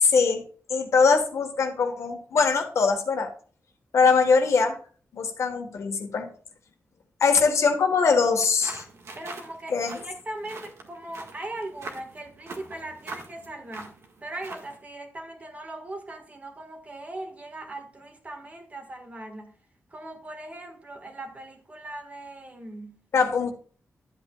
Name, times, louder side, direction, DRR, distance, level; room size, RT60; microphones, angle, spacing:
voice 1, 0.0-0.4 0.7-3.3 3.9-4.8 5.1-6.3 7.2-8.8 9.7-10.0 23.1-23.5, left 5 dB, 75° left, 1.5 m, -22 dB
sound 1, 8.3-14.8, right 3 dB, 70° right, 1.7 m, -43 dB
voice 2, 9.2-19.5 19.9-23.0, right 1 dB, 30° right, 1.7 m, -39 dB
12.0 x 8.4 x 2.4 m
wide cardioid pair, 150°, 5 cm